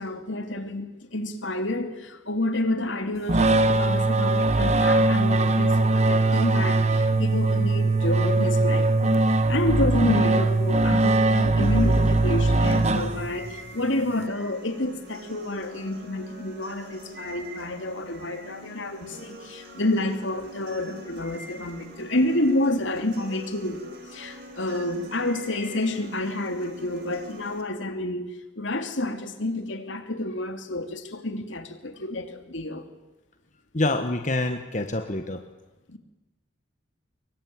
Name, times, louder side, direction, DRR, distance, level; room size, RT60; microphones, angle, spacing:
voice 1, 0.0-23.8 24.1-28.3 28.6-32.8 35.9-36.0, left 1 dB, 70° left, 2.9 m, -29 dB
sound 1, 3.3-13.5, right 2 dB, 35° right, 1.2 m, -21 dB
sound 2, 11.6-27.6, right 1 dB, 55° right, 4.3 m, -44 dB
voice 2, 33.7-35.4, left 2 dB, 40° left, 1.4 m, -26 dB
25.5 x 23.0 x 9.5 m
head